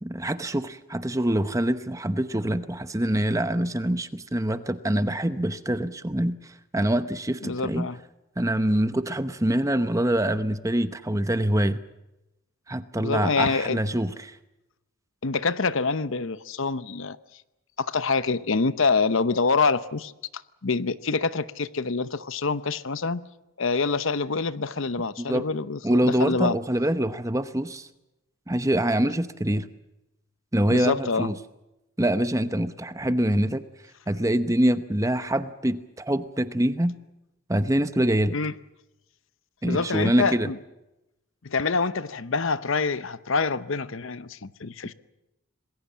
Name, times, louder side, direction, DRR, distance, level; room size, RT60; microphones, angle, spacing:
voice 1, 0.0-7.9 8.4-11.8 12.7-14.4 25.2-25.5 25.8-27.9 28.5-29.7 30.5-31.4 32.0-33.6 34.1-37.0 37.5-38.4 39.6-40.5, right 1 dB, 15° right, 11 dB, 0.9 m, -25 dB
voice 2, 7.4-8.0 13.0-13.8 15.2-17.2 17.8-20.1 20.6-23.2 23.6-26.6 30.7-31.3 38.3-38.5 39.6-40.6 41.4-44.9, left 4 dB, 60° left, 14 dB, 0.8 m, -26 dB
27.0 x 20.5 x 7.4 m, 0.93 s
head